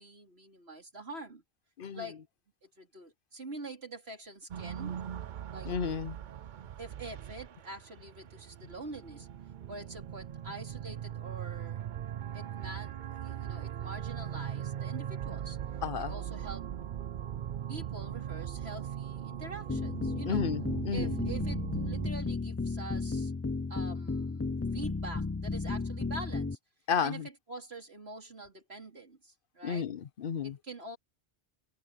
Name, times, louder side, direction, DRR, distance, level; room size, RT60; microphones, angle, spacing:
voice 1, 0.0-1.4 1.9-2.2 2.6-5.0 5.5-5.7 6.8-9.3 9.7-11.9 12.3-15.6 16.1-16.7 17.7-20.5 20.9-23.3 23.7-26.6 27.0-27.2 27.5-29.9 30.4-31.0, right 2 dB, 80° right, 4.2 m, -45 dB
sound 1, 4.5-22.1, right 10 dB, 55° right, 0.6 m, -39 dB
voice 2, 5.7-6.2 15.8-16.1 20.3-21.1 26.9-27.3 29.6-30.6, left 6 dB, 60° left, 0.9 m, -32 dB
sound 2, 19.7-26.6, left 3 dB, 25° left, 0.3 m, -34 dB
omnidirectional pair, 1.0 m